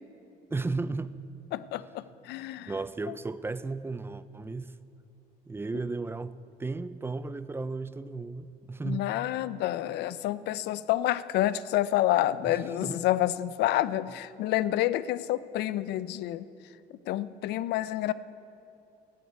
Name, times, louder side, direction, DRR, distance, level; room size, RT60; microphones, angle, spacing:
voice 1, 0.5-1.1 2.7-4.7 5.5-9.0 12.4-13.0, right 3 dB, 15° right, 0.4 m, -34 dB
voice 2, 1.5-2.7 3.1-3.2 8.8-16.5 17.1-18.1, left 14 dB, 80° left, 0.5 m, -28 dB
14.0 x 9.4 x 8.2 m
cardioid pair, 110°, 17 cm